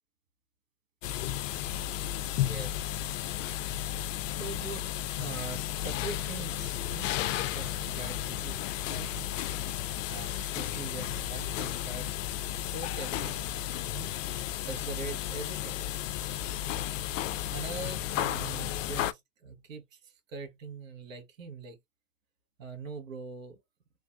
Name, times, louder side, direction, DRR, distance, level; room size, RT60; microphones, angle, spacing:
sound 1, 1.0-19.1, left 12 dB, 75° left, 0.5 m, -33 dB
voice 1, 2.3-3.0 3.8-4.1 4.3-4.9 5.2-9.3 10.1-12.1 12.7-13.6 13.9-14.1 14.6-15.9 17.5-21.8 22.6-23.6, right 4 dB, 75° right, 1.5 m, -42 dB
3.3 x 2.5 x 2.5 m
supercardioid pair, 150°, 39 cm